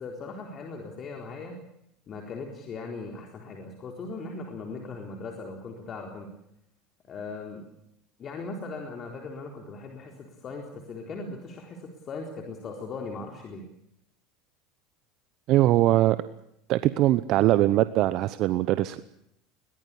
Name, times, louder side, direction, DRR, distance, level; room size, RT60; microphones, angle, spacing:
voice 1, 0.0-1.6 2.1-6.3 7.1-7.6 8.2-13.6, left 3 dB, 40° left, 2 dB, 4.1 m, -39 dB
voice 2, 15.5-16.2 16.7-19.0, right 15 dB, 60° right, 14 dB, 0.9 m, -21 dB
21.5 x 19.5 x 8.5 m, 0.79 s
hypercardioid pair, 90°, 0 cm